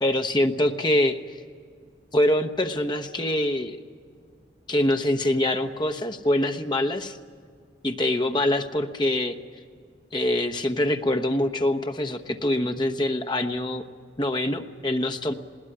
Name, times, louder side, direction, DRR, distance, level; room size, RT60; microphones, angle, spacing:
voice 1, 0.0-1.2 2.1-3.8 4.7-7.2 7.8-9.4 10.1-13.8 14.2-15.3, left 1 dB, 25° left, 6 dB, 1.0 m, -24 dB
21.0 x 17.5 x 9.9 m, 2.1 s
head